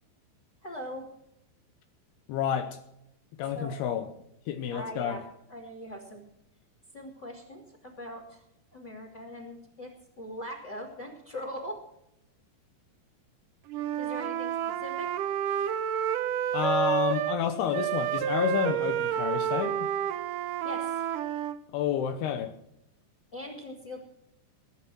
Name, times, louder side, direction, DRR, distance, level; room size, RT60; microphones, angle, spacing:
voice 1, 0.6-1.1 3.5-3.8 4.7-6.2 6.9-8.4 8.7-11.8 14.0-15.1 20.6-21.0 23.3-24.0, left 1 dB, 30° left, -2 dB, 2.8 m, -41 dB
voice 2, 2.3-2.8 3.4-4.1 4.5-5.2 16.5-19.9 21.7-22.5, left 9 dB, 75° left, 7 dB, 2.9 m, -30 dB
Wind instrument woodwind instrument, 13.7-17.4 17.7-21.6, right 9 dB, 80° right, 1.9 m, -29 dB
21.0 x 9.1 x 6.2 m, 0.80 s
omnidirectional pair, 4.8 m